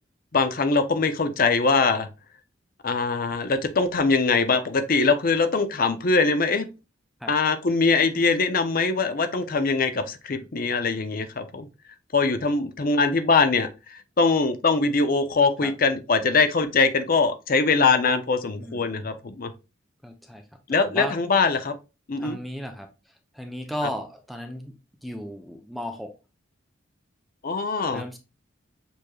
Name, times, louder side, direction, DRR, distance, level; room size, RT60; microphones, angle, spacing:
voice 1, 0.3-2.1 2.8-6.7 7.3-11.7 12.1-19.5 20.7-21.7 22.1-22.4 27.4-28.0, left 4 dB, 50° left, 0.6 m, -22 dB
voice 2, 18.6-18.9 20.0-21.2 22.2-26.1 27.9-28.2, equal, ahead, 0.5 m, -36 dB
6.9 x 3.1 x 2.3 m
head